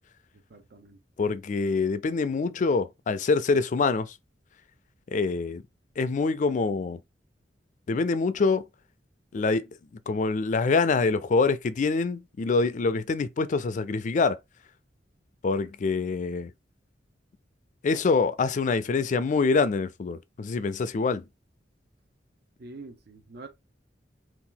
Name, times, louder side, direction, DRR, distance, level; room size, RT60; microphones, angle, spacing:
voice 1, 0.5-1.0 22.6-23.5, right 3 dB, 60° right, 0.6 m, -45 dB
voice 2, 1.2-4.1 5.1-5.6 6.0-7.0 7.9-8.7 9.3-9.7 10.1-14.4 15.4-16.5 17.8-21.2, left 4 dB, 45° left, 0.4 m, -25 dB
2.8 x 2.4 x 3.8 m
head